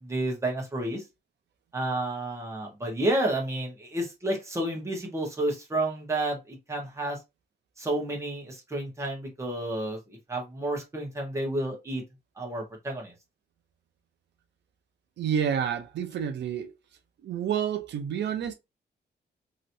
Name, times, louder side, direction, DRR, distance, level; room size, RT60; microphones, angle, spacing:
voice 1, 0.0-1.0 1.7-7.2 7.8-12.0 12.4-13.1, right 1 dB, 15° right, 1.3 m, -30 dB
voice 2, 15.2-16.7 17.2-18.5, right 8 dB, 85° right, 0.6 m, -29 dB
3.0 x 2.9 x 2.7 m
wide cardioid pair, 165°, 18 cm